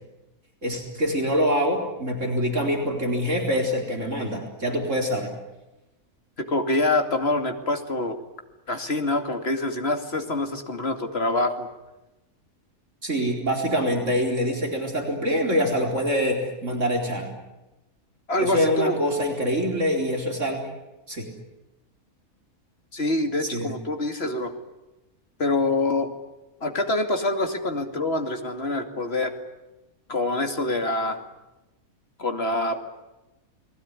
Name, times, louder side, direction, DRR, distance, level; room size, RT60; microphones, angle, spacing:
voice 1, 0.6-5.3 13.0-17.3 18.4-20.7 21.1-21.3 23.5-23.7, equal, 55° right, 1 dB, 4.6 m, -25 dB
voice 2, 6.4-8.2 8.7-11.7 18.3-19.0 22.9-24.5 25.4-26.1 26.6-29.3 30.1-31.2 32.2-32.8, left 2 dB, 45° left, 6 dB, 2.8 m, -25 dB
30.0 x 20.0 x 9.8 m, 1.0 s
omnidirectional pair, 1.5 m